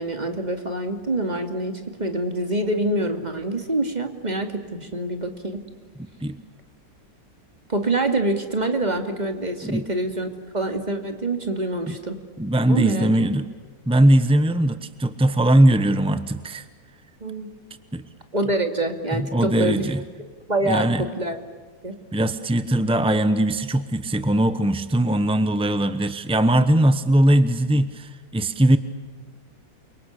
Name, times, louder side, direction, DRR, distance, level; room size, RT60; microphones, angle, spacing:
voice 1, 0.0-5.6 7.7-12.2 12.7-13.1 17.2-17.5 18.3-19.9 20.5-21.4 21.8-21.9, right 2 dB, 25° right, 5 dB, 2.5 m, -26 dB
voice 2, 12.4-13.5 13.9-16.6 17.9-18.0 19.1-20.0 20.6-21.0 22.1-28.8, right 1 dB, 5° right, 11 dB, 0.4 m, -20 dB
29.0 x 24.5 x 8.3 m, 1.5 s
omnidirectional pair, 1.9 m